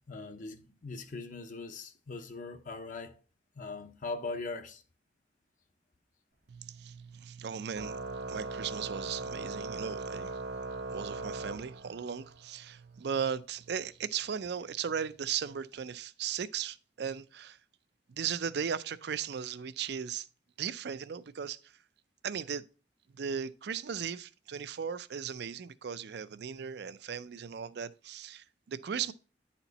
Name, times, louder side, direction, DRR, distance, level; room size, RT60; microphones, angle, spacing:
voice 1, 0.1-3.1 3.6-4.8, left 3 dB, 45° left, 0.7 m, -40 dB
voice 2, 6.5-17.6 18.1-20.3 20.6-21.6 22.2-22.6 23.1-29.1, right 7 dB, 65° right, 0.4 m, -37 dB
Organ, 7.7-12.3, right 3 dB, 85° right, 1.1 m, -39 dB
9.8 x 4.4 x 4.0 m
head